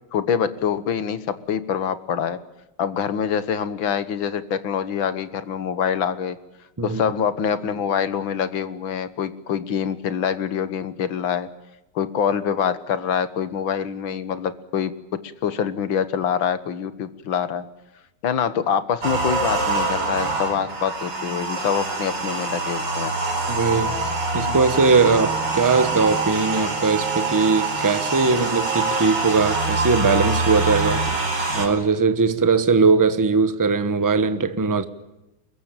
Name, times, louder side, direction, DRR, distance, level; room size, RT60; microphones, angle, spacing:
voice 1, 0.1-2.4 2.8-6.4 6.8-11.5 12.0-14.9 15.2-17.6 18.2-23.1, left 7 dB, 65° left, 2.0 m, -25 dB
sound 1, 19.0-31.7, right 3 dB, 55° right, 5.3 m, -25 dB
voice 2, 23.5-31.0 31.5-34.8, right 4 dB, 15° right, 0.8 m, -20 dB
23.5 x 22.0 x 9.0 m
omnidirectional pair, 2.3 m